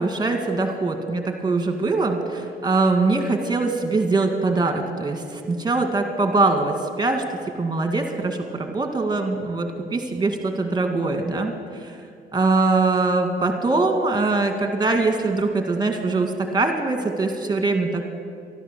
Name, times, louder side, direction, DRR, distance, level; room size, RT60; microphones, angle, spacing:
voice 1, 0.0-7.2 7.5-12.0 12.3-18.0, right 3 dB, 20° right, 5 dB, 1.7 m, -22 dB
13.0 x 12.5 x 6.6 m, 2.3 s
cardioid pair, 90°, 20 cm